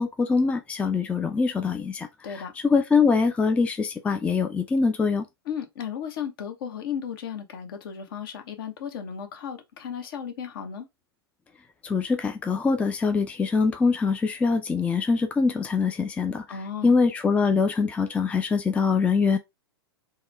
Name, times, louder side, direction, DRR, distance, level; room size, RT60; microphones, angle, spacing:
voice 1, 0.0-5.2 11.8-16.6 16.8-19.4, left 4 dB, 10° left, 0.4 m, -23 dB
voice 2, 5.5-10.9 16.5-16.9, left 8 dB, 55° left, 0.9 m, -35 dB
3.5 x 2.1 x 3.3 m
figure-of-eight pair, 100°, 14 cm